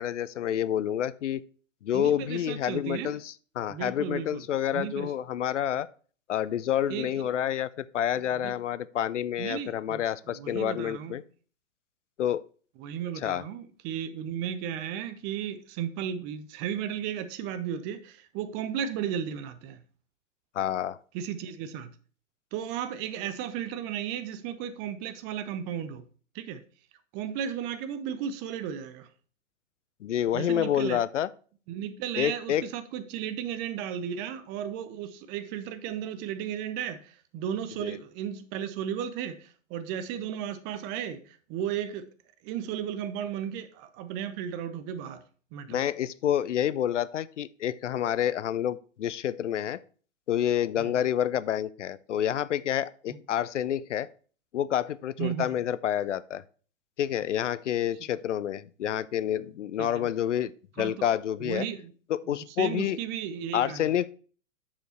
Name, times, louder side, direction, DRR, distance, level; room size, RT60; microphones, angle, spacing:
voice 1, 0.0-1.4 1.8-5.9 6.3-11.2 12.2-12.4 13.2-13.4 20.5-21.0 30.0-31.3 32.2-32.6 37.8-38.0 45.7-49.8 50.3-54.1 54.5-56.4 57.0-60.5 60.8-61.6 62.1-63.0 63.5-64.1, left 10 dB, 70° left, 0.5 m, -28 dB
voice 2, 1.9-3.2 3.7-4.4 4.7-5.1 6.9-7.3 8.4-8.6 9.4-10.0 10.3-11.2 12.8-19.8 21.1-21.9 22.5-26.0 26.3-26.6 27.1-29.1 30.3-31.0 31.7-42.1 42.4-45.2 45.5-45.8 50.8-51.0 53.1-53.2 55.2-55.6 59.8-60.1 60.8-60.9 61.4-61.9 62.3-63.9, right 9 dB, 25° right, 0.7 m, -34 dB
7.1 x 5.3 x 4.3 m
figure-of-eight pair, 110°, 38 cm